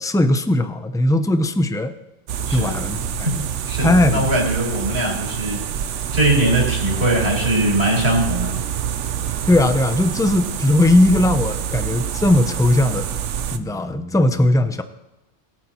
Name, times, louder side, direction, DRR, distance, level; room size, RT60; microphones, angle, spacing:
voice 1, 0.0-1.9 2.5-3.4 3.8-4.3 9.5-13.2 13.5-14.8, left 1 dB, 5° left, 9 dB, 0.3 m, -18 dB
sound 1, 2.3-13.6, right 9 dB, 85° right, 1.0 m, -26 dB
voice 2, 3.7-5.6 6.1-8.5, right 1 dB, 60° right, -3 dB, 4.4 m, -21 dB
21.0 x 9.0 x 3.0 m, 1.0 s
omnidirectional pair, 1.2 m